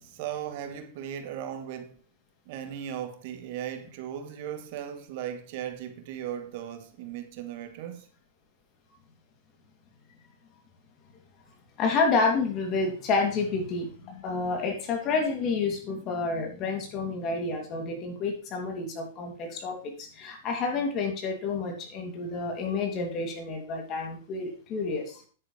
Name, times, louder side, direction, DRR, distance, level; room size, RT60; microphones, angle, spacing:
voice 1, 0.0-2.0 2.5-8.1, right 10 dB, 55° right, 1.3 m, -37 dB
voice 2, 11.8-25.2, left 4 dB, 35° left, 2.8 m, -29 dB
9.8 x 9.0 x 3.3 m
hypercardioid pair, 135°, 0 cm